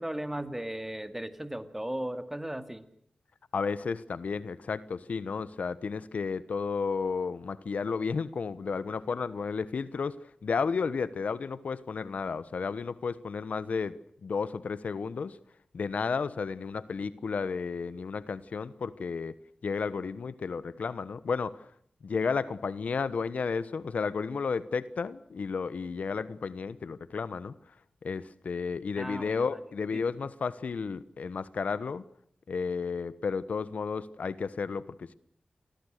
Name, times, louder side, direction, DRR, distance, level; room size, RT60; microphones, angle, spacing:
voice 1, 0.0-2.8 29.0-29.6 29.9-30.1, right 1 dB, 10° right, 10 dB, 2.3 m, -36 dB
voice 2, 3.5-10.2 10.4-15.4 15.7-19.3 19.6-21.7 22.0-27.5 28.0-32.0 32.5-35.1, left 5 dB, 75° left, 16 dB, 1.1 m, -32 dB
29.5 x 22.5 x 6.6 m, 0.67 s
wide cardioid pair, 70°, 2 cm